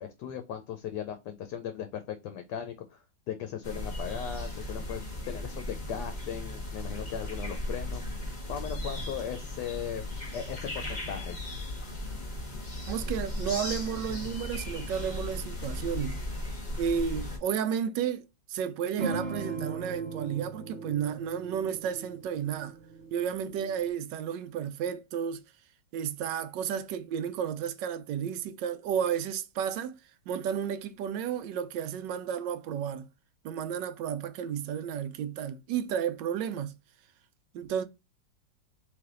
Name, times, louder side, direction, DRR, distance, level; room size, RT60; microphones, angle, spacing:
voice 1, 0.0-3.0 3.3-8.0 8.5-10.0 10.3-11.4, left 9 dB, 75° left, 1.2 m, -37 dB
sound 1, 3.6-17.4, left 1 dB, 30° left, 1.2 m, -36 dB
voice 2, 12.9-16.2 16.8-22.8 23.1-25.4 25.9-30.0 30.3-33.1 33.4-36.7 37.5-37.8, right 8 dB, 80° right, 1.2 m, -32 dB
sound 2, 19.0-23.9, right 4 dB, 55° right, 0.8 m, -39 dB
3.3 x 3.2 x 3.7 m
omnidirectional pair, 1.9 m